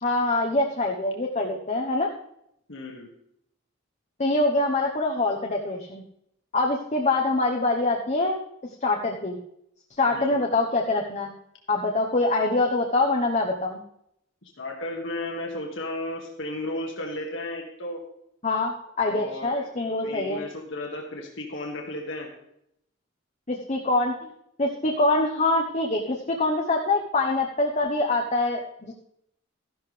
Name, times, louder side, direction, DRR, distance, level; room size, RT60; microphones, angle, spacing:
voice 1, 0.0-2.1 4.2-6.0 6.5-8.4 8.8-9.4 10.0-11.3 11.7-13.8 18.4-20.4 23.5-24.3 24.6-28.9, left 2 dB, 35° left, 1 dB, 1.0 m, -24 dB
voice 2, 2.7-3.1 10.1-10.4 14.4-18.0 19.1-19.7 20.0-22.3, left 1 dB, 65° left, 0 dB, 1.8 m, -34 dB
13.5 x 12.0 x 3.3 m, 0.75 s
head